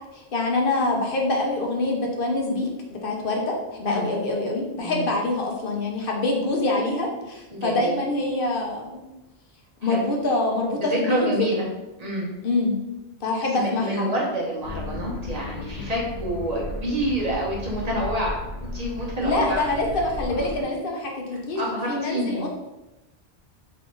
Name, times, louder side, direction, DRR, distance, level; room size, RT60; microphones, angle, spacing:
voice 1, 0.1-2.7 3.0-9.0 9.8-11.3 12.4-12.8 13.2-14.1 19.2-21.6 21.9-22.5, left 2 dB, 60° left, 0 dB, 0.9 m, -25 dB
voice 2, 4.8-5.1 7.5-8.0 9.8-10.0 10.8-11.6 12.0-12.3 13.5-18.4 18.7-19.7 21.5-22.4, right 1 dB, 40° right, -4 dB, 1.2 m, -28 dB
sound 1, 14.6-20.6, left 2 dB, 90° left, 1.0 m, -35 dB
3.5 x 3.3 x 3.8 m, 0.99 s
omnidirectional pair, 1.1 m